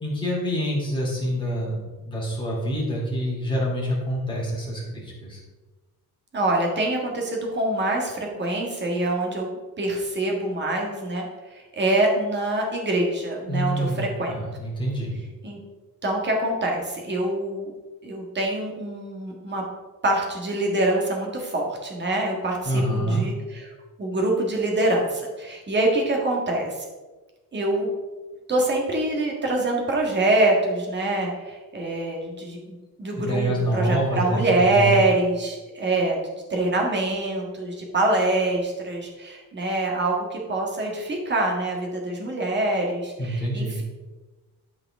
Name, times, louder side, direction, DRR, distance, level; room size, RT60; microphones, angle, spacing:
voice 1, 0.0-5.4 13.5-14.0 14.3-15.2 22.6-23.2 33.2-34.4 34.7-35.0 43.2-43.8, equal, 10° left, -5 dB, 2.6 m, -26 dB
voice 2, 6.3-9.5 9.8-11.2 11.5-14.4 15.4-15.6 16.0-17.7 18.0-19.6 20.0-23.7 24.0-26.7 27.5-27.9 28.5-36.2 36.5-43.8, right 2 dB, 30° right, 0 dB, 1.7 m, -25 dB
12.0 x 4.9 x 3.7 m, 1.3 s
cardioid pair, 175°, 38 cm